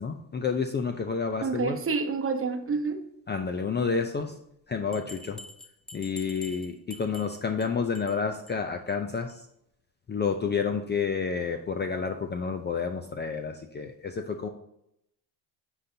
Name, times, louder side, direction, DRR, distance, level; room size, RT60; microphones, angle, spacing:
voice 1, 0.0-1.8 3.3-4.4 4.7-5.4 5.9-9.3 10.1-14.5, left 5 dB, 25° left, 6 dB, 0.5 m, -30 dB
voice 2, 1.4-3.0, right 4 dB, 30° right, 6 dB, 0.9 m, -28 dB
Bell, 4.9-7.7 7.9-8.2 8.5-8.6 8.9-9.0 9.3-9.4, left 1 dB, ahead, 0.9 m, -46 dB
9.8 x 3.9 x 2.7 m, 0.75 s
supercardioid pair, 70°, 47 cm